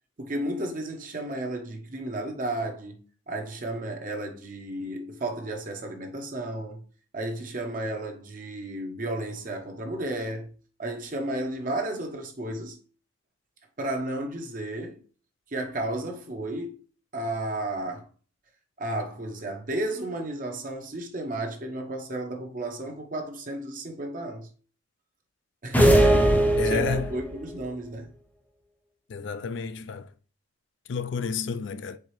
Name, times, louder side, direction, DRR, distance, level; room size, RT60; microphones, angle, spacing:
voice 1, 0.2-6.8 7.1-10.5 10.8-12.8 13.8-15.0 15.5-16.8 17.1-18.1 18.8-24.5 25.6-26.3 26.6-28.1, right 1 dB, 40° right, 0.7 m, -33 dB
sound 1, 25.7-27.3, right 1 dB, 10° left, 0.5 m, -19 dB
voice 2, 26.6-27.1 29.1-30.1 30.9-32.0, left 5 dB, 60° left, 0.3 m, -30 dB
4.6 x 3.6 x 3.0 m
head